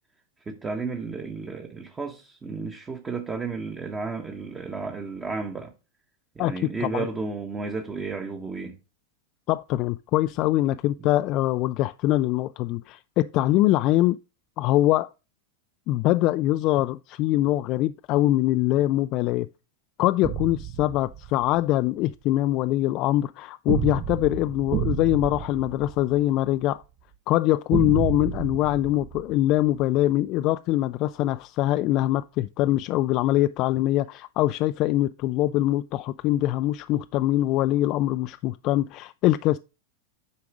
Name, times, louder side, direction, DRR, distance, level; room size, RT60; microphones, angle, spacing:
voice 1, 0.5-5.7 6.3-8.8 11.0-11.1, right 4 dB, 15° right, 1.1 m, -33 dB
voice 2, 6.4-7.1 9.5-14.2 14.6-15.1 15.9-19.5 20.0-26.8 27.3-39.6, left 15 dB, 45° left, 0.3 m, -23 dB
sound 1, 20.2-21.6 23.7-26.6 27.7-29.9, right 10 dB, 40° right, 0.9 m, -31 dB
8.4 x 5.0 x 4.8 m
hypercardioid pair, 120°, 0 cm